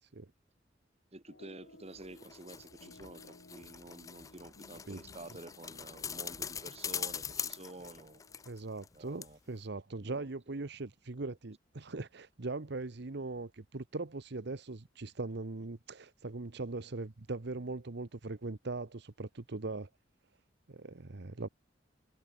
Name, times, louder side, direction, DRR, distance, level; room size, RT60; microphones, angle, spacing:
voice 1, 1.1-8.2 8.9-9.4 10.0-10.7, right 2 dB, 35° right, 2.3 m, -50 dB
sound 1, 1.3-8.5, left 1 dB, 75° left, 3.8 m, -59 dB
sound 2, 1.9-8.9 9.2-9.3, left 7 dB, 20° left, 0.3 m, -42 dB
voice 2, 8.5-19.9 20.7-21.5, right 3 dB, 65° right, 1.0 m, -40 dB
head